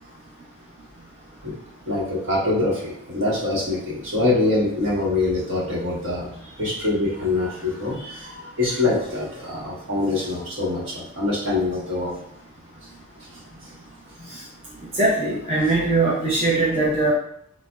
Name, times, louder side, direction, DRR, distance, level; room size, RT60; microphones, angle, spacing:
voice 1, 1.9-12.2 13.2-13.7 14.2-14.3, left 2 dB, 60° right, -5 dB, 1.0 m, -25 dB
voice 2, 14.9-17.1, right 2 dB, 25° right, -7 dB, 0.5 m, -21 dB
3.9 x 2.0 x 2.2 m, 0.70 s
head